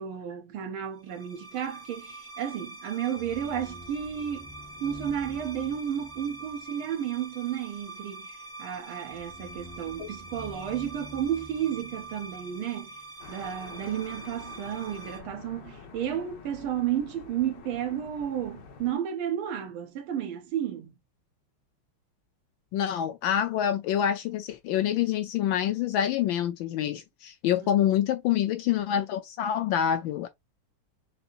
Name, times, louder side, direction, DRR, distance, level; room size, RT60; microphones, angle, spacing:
voice 1, 0.0-4.5 4.8-12.9 13.3-20.9 27.6-28.0, right 9 dB, 75° right, 1.7 m, -32 dB
sound 1, 1.0-15.2, right 2 dB, 30° left, 0.4 m, -44 dB
sound 2, 13.2-18.9, left 5 dB, 60° left, 1.5 m, -47 dB
voice 2, 22.7-30.3, left 10 dB, 75° left, 1.2 m, -26 dB
6.6 x 2.8 x 2.4 m
omnidirectional pair, 2.4 m